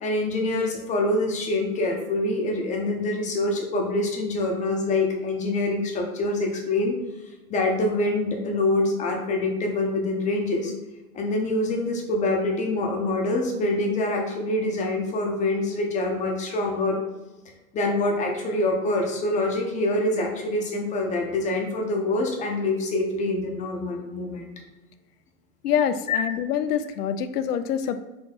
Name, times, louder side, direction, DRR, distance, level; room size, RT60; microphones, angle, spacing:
voice 1, 0.0-7.0 7.5-10.7 11.1-17.0 17.7-24.5 26.1-26.2, left 2 dB, 15° left, 1 dB, 0.6 m, -25 dB
voice 2, 25.6-28.0, left 8 dB, 85° left, 11 dB, 0.5 m, -25 dB
4.3 x 2.7 x 3.9 m, 1.1 s
hypercardioid pair, 120°, 46 cm